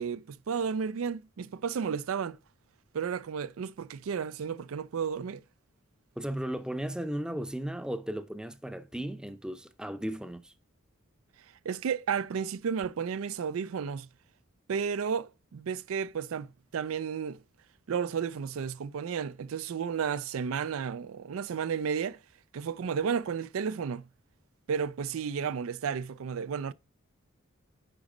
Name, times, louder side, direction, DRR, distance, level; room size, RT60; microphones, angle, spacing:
voice 1, 0.0-2.4 2.9-5.4 11.6-14.1 14.7-17.4 17.9-22.2 22.5-24.1 24.7-26.7, right 6 dB, 70° right, 0.4 m, -32 dB
voice 2, 6.2-10.5, right 1 dB, 5° right, 0.6 m, -35 dB
10.0 x 4.0 x 4.9 m
head